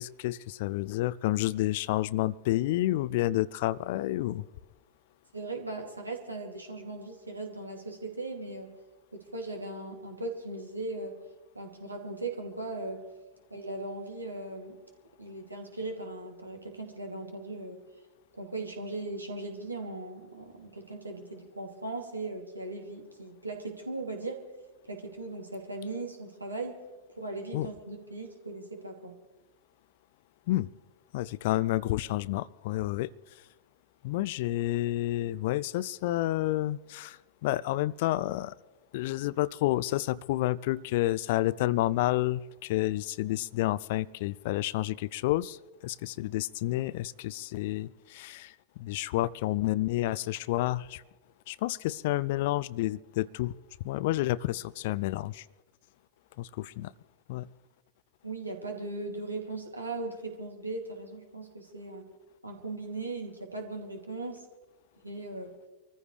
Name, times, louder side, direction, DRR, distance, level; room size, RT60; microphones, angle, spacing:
voice 1, 0.0-4.4 27.5-27.7 30.5-30.7 31.1-33.1 34.0-38.5 38.9-45.6 45.8-51.0 51.5-53.5 53.8-55.4 56.4-56.9 57.3-57.5, left 16 dB, 50° left, 22 dB, 0.4 m, -30 dB
voice 2, 5.3-8.7 9.1-11.2 11.5-13.0 13.5-14.8 15.2-17.8 18.3-24.5 24.9-26.9 27.1-29.2 58.2-62.1 62.4-64.5 65.0-65.6, right 2 dB, 80° right, 2 dB, 2.6 m, -38 dB
25.5 x 14.5 x 3.3 m, 1.2 s
figure-of-eight pair, 90°, 0 cm